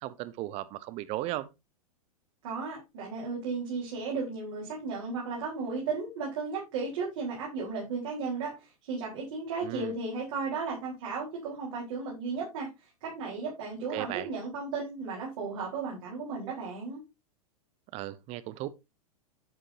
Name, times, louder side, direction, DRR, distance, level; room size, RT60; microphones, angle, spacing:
voice 1, 0.0-1.5 9.6-9.9 13.9-14.3 17.9-18.7, right 16 dB, 35° right, 0.8 m, -36 dB
voice 2, 2.4-17.0, right 4 dB, 50° right, 4.3 m, -35 dB
11.0 x 7.6 x 2.7 m
figure-of-eight pair, 95°, 19 cm